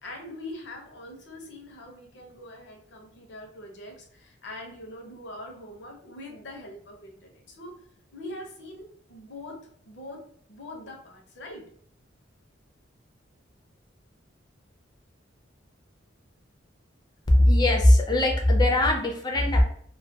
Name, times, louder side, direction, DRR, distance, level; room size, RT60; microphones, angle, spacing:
voice 1, 0.0-7.7 8.1-11.7, left 1 dB, 65° left, 1 dB, 0.7 m, -43 dB
voice 2, 17.3-19.6, left 1 dB, 20° left, 2 dB, 0.4 m, -19 dB
2.3 x 2.2 x 2.6 m, 0.62 s
head